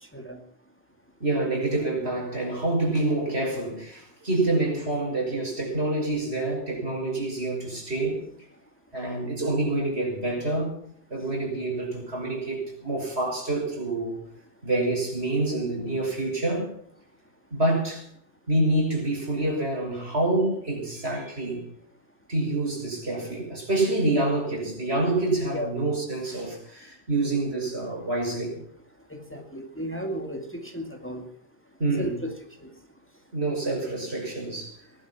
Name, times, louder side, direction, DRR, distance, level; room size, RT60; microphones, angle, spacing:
voice 1, 1.2-8.2 8.9-10.7 11.1-14.2 14.6-16.7 17.5-18.0 18.5-21.6 22.3-28.6 31.8-32.2 33.3-34.7, right 2 dB, 75° right, 0 dB, 6.5 m, -27 dB
voice 2, 29.1-31.3 32.0-32.3 32.6-32.7, equal, 10° left, 4 dB, 2.1 m, -34 dB
19.5 x 11.5 x 5.8 m, 0.64 s
omnidirectional pair, 1.1 m